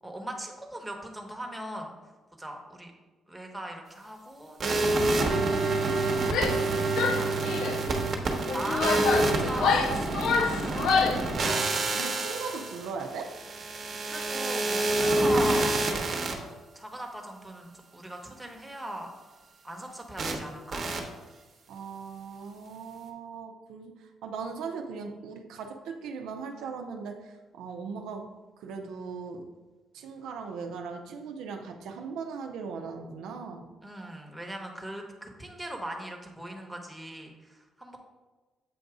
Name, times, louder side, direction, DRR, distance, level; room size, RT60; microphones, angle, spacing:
voice 1, 0.0-1.9 2.4-2.9 3.3-5.6 6.1-6.3 6.7-10.5 14.0-15.8 16.7-19.1 19.6-20.8 33.8-38.0, right 1 dB, 5° right, 1 dB, 1.0 m, -39 dB
sound 1, 4.6-16.3 20.2-20.3 20.7-21.0, right 2 dB, 50° right, 0.9 m, -27 dB
Female speech woman speaking / Yell, 6.2-6.7 7.0-7.8 8.5-11.3, left 5 dB, 90° left, 0.5 m, -27 dB
voice 2, 11.8-13.4 21.7-28.3 28.6-29.5 29.9-33.7, right 5 dB, 85° right, 3 dB, 0.6 m, -39 dB
7.6 x 2.6 x 4.8 m, 1.3 s
cardioid pair, 90°, 0 cm